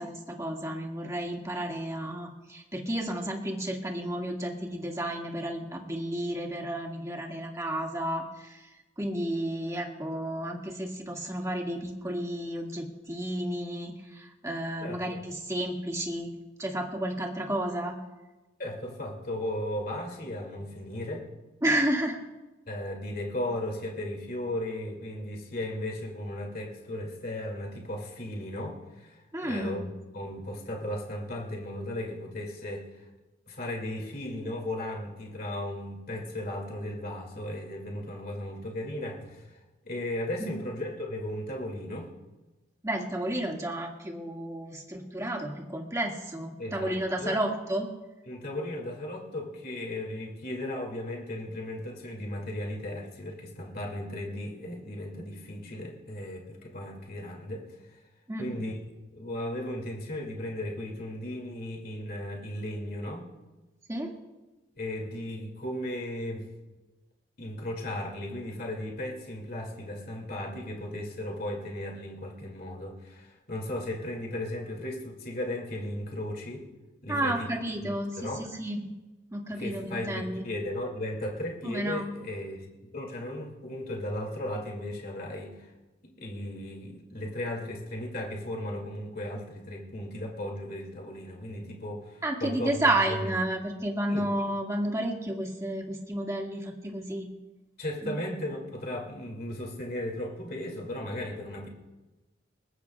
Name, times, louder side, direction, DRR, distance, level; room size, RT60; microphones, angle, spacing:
voice 1, 0.0-8.6 9.0-16.3 16.6-18.0 21.6-22.2 29.3-29.8 40.4-40.5 42.8-47.9 58.3-58.5 63.9-64.1 77.1-78.8 79.3-80.4 81.6-82.1 92.2-97.3 98.0-98.1, right 1 dB, 15° right, 0 dB, 1.9 m, -31 dB
voice 2, 14.8-15.2 18.6-21.3 22.7-32.9 33.5-39.6 39.8-42.1 46.6-47.4 48.3-58.0 58.4-63.3 64.8-66.5 67.4-76.7 77.0-77.5 77.8-77.9 78.2-78.5 79.5-82.7 82.9-85.7 86.2-92.8 93.1-93.3 94.1-94.3 97.8-101.7, left 1 dB, 50° left, 0 dB, 2.5 m, -36 dB
21.0 x 20.0 x 2.4 m, 1.1 s
head